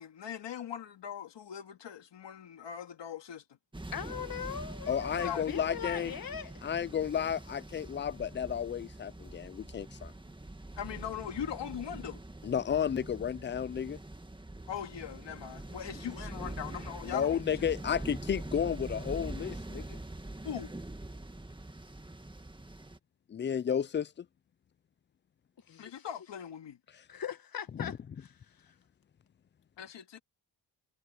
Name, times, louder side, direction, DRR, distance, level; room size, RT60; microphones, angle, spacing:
voice 1, 0.0-3.4 5.1-5.6 10.8-12.2 14.7-17.7 20.4-20.7 25.8-26.8 29.8-30.2, left 9 dB, 70° left, 2.2 m, -41 dB
sound 1, 3.7-23.0, right 2 dB, 10° right, 1.8 m, -44 dB
voice 2, 3.9-6.5 25.7-26.0 27.1-27.9 28.2-28.8, left 8 dB, 50° left, 1.7 m, -40 dB
voice 3, 4.9-6.1 6.6-10.1 12.4-14.0 17.0-20.0 23.3-24.3 27.8-27.9, left 8 dB, 25° left, 0.4 m, -32 dB
cardioid pair, 85°, 44 cm